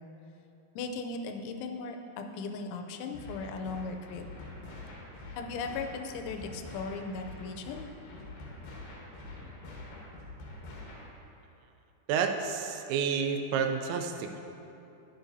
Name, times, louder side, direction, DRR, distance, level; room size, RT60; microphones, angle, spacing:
voice 1, 0.8-4.2 5.3-7.9, left 4 dB, 90° left, 5 dB, 3.0 m, -37 dB
sound 1, 3.1-11.1, left 2 dB, 70° left, 2.3 m, -45 dB
voice 2, 12.1-14.4, right 6 dB, 85° right, 5 dB, 2.8 m, -30 dB
11.5 x 7.7 x 2.7 m, 2.9 s
omnidirectional pair, 5.3 m